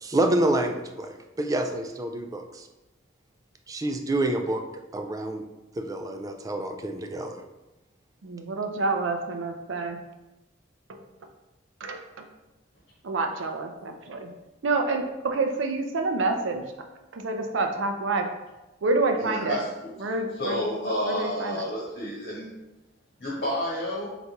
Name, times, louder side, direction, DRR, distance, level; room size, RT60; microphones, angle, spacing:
voice 1, 0.0-2.7 3.7-4.6 4.9-5.4 5.8-7.4, right 1 dB, 20° right, 5 dB, 0.3 m, -28 dB
voice 2, 8.2-10.0 11.8-12.3 13.0-14.3 14.6-16.6 17.1-18.3 18.8-19.6 20.0-21.6, right 3 dB, 85° right, 5 dB, 0.5 m, -28 dB
voice 3, 19.2-19.9 20.4-22.5 23.2-24.1, left 1 dB, 50° left, -7 dB, 1.4 m, -30 dB
3.9 x 3.5 x 2.9 m, 1.0 s
head